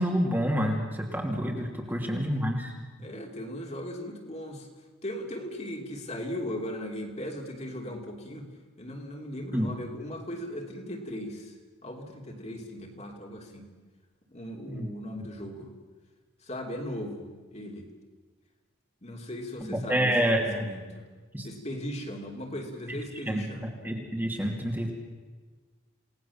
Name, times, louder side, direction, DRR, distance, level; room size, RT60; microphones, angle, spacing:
voice 1, 0.0-2.7 9.5-9.7 14.7-14.9 15.2-15.3 19.6-20.7 21.3-21.5 23.3-23.4 23.8-24.9, equal, 10° right, 0 dB, 2.7 m, -28 dB
voice 2, 3.0-4.7 5.0-8.5 8.8-11.5 11.8-13.7 14.3-15.7 16.5-17.9 19.0-21.0 21.4-23.7, equal, 30° left, 1 dB, 3.2 m, -38 dB
28.5 x 19.0 x 7.3 m, 1.4 s
head